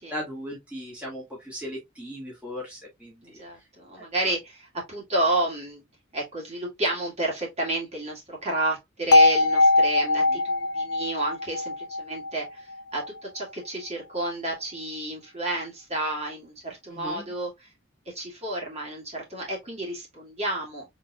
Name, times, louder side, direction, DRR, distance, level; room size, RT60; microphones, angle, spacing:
voice 1, 0.1-3.4 4.0-4.1 10.3-10.4 16.9-17.3, equal, 5° right, 1.7 m, -37 dB
voice 2, 3.2-5.8 6.1-12.7 12.9-13.0 13.3-17.7 18.1-20.9, right 2 dB, 35° right, 1.9 m, -31 dB
sound 1, 9.1-13.1, left 2 dB, 90° left, 0.5 m, -21 dB
4.2 x 3.7 x 2.3 m
head